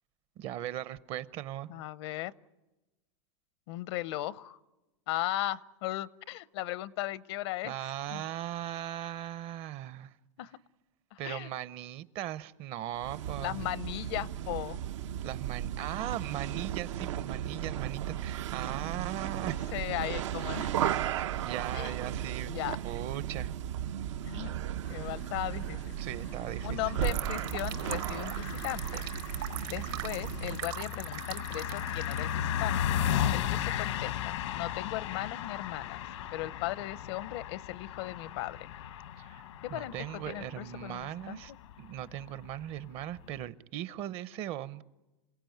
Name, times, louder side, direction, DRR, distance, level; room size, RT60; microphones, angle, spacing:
voice 1, 0.4-1.7 7.6-10.1 11.2-13.7 15.2-19.6 21.4-22.5 22.8-23.5 26.0-26.9 39.2-39.4 39.7-41.5 41.8-44.8, right 12 dB, 40° right, 0.7 m, -38 dB
voice 2, 1.7-2.3 3.7-4.6 5.1-8.2 10.4-10.5 11.1-11.5 13.4-14.8 19.7-21.0 21.7-21.9 22.4-22.8 24.2-24.5 24.9-25.9 26.6-29.0 29.7-32.8 33.3-36.0 36.3-38.7 39.6-41.6, left 15 dB, 60° left, 0.7 m, -37 dB
sound 1, 13.0-30.7, right 11 dB, 80° right, 0.9 m, -35 dB
sound 2, 24.8-43.4, left 10 dB, 85° left, 1.3 m, -36 dB
sound 3, 27.0-32.4, right 15 dB, 55° right, 1.0 m, -42 dB
27.5 x 17.0 x 9.3 m
supercardioid pair, 140°, 15 cm